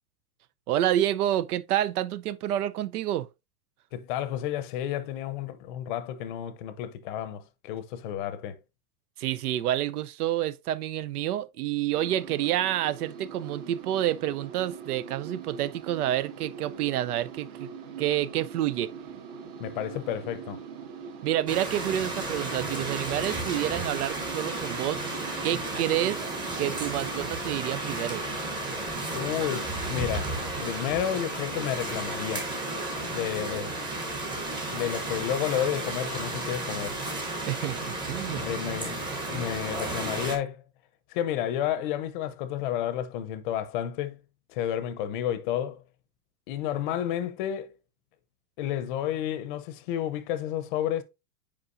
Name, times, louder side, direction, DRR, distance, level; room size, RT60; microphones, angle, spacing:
voice 1, 0.7-3.3 9.2-17.7 18.0-18.9 21.2-25.0 25.4-26.2 26.6-28.2 37.4-38.4, right 12 dB, 80° right, 0.7 m, -28 dB
voice 2, 3.9-8.6 19.6-20.6 29.1-32.5 33.0-33.8 34.7-37.0 38.4-39.0 39.3-40.6 41.1-44.2 44.5-45.8 46.5-47.8 48.6-51.0, left 10 dB, 35° left, 0.7 m, -31 dB
sound 1, 11.9-27.3, right 6 dB, 50° right, 2.0 m, -42 dB
sound 2, 21.5-40.4, right 2 dB, 10° right, 0.9 m, -33 dB
8.4 x 5.0 x 2.6 m
supercardioid pair, 165°, 44 cm